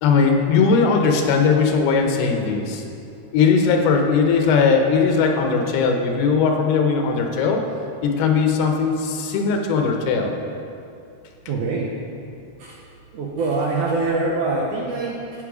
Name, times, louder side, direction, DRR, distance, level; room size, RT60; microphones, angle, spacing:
voice 1, 0.0-2.8 3.3-7.6 8.0-10.3, left 5 dB, 80° left, 3 dB, 2.7 m, -19 dB
voice 2, 11.5-11.9 12.6-12.7 13.1-15.2, right 3 dB, 75° right, -3 dB, 1.9 m, -24 dB
15.5 x 5.5 x 4.9 m, 2.6 s
omnidirectional pair, 4.6 m